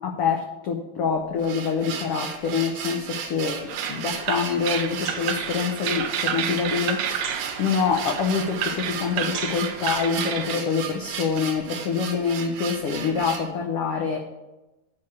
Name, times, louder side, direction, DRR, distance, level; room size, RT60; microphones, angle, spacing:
voice 1, 0.0-3.6 3.9-7.3 7.6-14.2, left 6 dB, 90° left, 2 dB, 1.3 m, -26 dB
sound 1, 1.2-13.5, right 7 dB, 90° right, 2.8 m, -35 dB
sound 2, 3.7-10.6, right 8 dB, 75° right, 2.0 m, -30 dB
sound 3, 4.1-11.7, right 4 dB, 50° right, 2.0 m, -45 dB
9.4 x 4.9 x 7.1 m, 1.0 s
omnidirectional pair, 3.8 m